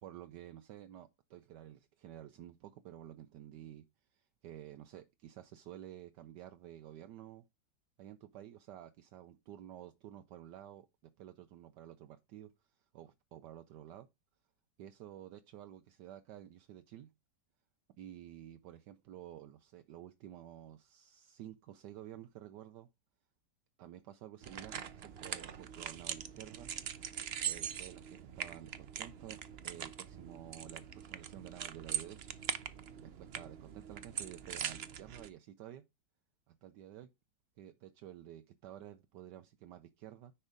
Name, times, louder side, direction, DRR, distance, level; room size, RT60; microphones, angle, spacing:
voice 1, 0.0-3.8 4.1-7.4 8.0-12.5 12.9-14.1 14.8-17.1 18.0-22.9 23.8-26.7 27.4-29.4 29.6-32.3 33.0-35.9 36.5-37.1 37.6-40.3, right 12 dB, 75° right, 1.2 m, -51 dB
sound 1, 24.4-35.3, right 8 dB, 60° right, 0.6 m, -42 dB
9.8 x 4.5 x 5.1 m
omnidirectional pair, 1.9 m